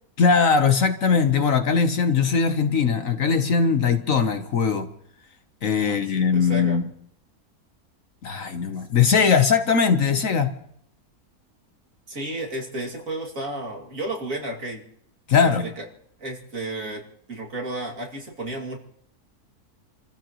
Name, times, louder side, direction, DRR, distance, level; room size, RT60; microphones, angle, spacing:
voice 1, 0.2-4.9 5.6-6.9 8.2-10.6 15.3-15.7, left 5 dB, 60° left, 1.4 m, -20 dB
voice 2, 5.8-6.8 12.1-14.8 15.4-15.5 15.8-15.9 16.2-17.0 17.3-18.8, right 1 dB, 60° right, 2.9 m, -32 dB
29.0 x 15.0 x 3.0 m
omnidirectional pair, 1.6 m